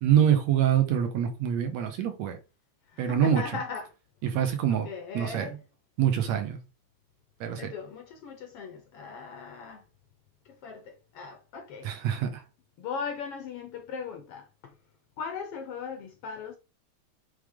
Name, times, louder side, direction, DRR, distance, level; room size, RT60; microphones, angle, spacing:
voice 1, 0.0-2.4 3.0-3.4 4.2-4.9 5.1-5.5 6.0-6.6 7.4-7.7 11.8-12.4, right 9 dB, 70° right, 2.2 m, -25 dB
voice 2, 2.9-3.9 4.7-5.5 7.6-9.8 10.4-11.9 12.8-14.7 15.2-16.6, left 6 dB, 70° left, 1.5 m, -38 dB
8.1 x 3.7 x 3.6 m
omnidirectional pair, 3.4 m